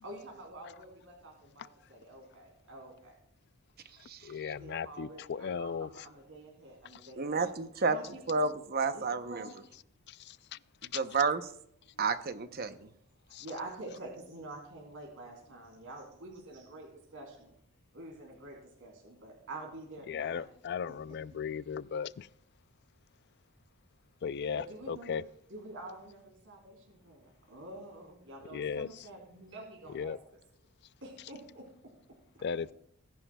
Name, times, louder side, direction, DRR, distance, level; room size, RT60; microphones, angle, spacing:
voice 1, 0.0-3.1 4.6-7.5 7.9-8.2 8.9-9.5 13.3-17.5 17.9-20.5 24.5-25.2 25.5-30.1 31.0-32.5, right 2 dB, 65° right, 3.1 m, -47 dB
voice 2, 4.2-6.1 6.9-7.0 10.1-10.6 10.9-11.0 13.3-13.5 20.1-22.3 24.2-25.2 28.5-29.1 29.9-30.2 32.4-32.7, left 6 dB, 50° left, 0.4 m, -37 dB
voice 3, 7.2-8.0 8.3-9.5 10.9-11.4 12.0-12.9, right 4 dB, 45° right, 0.8 m, -30 dB
19.0 x 11.0 x 2.3 m
head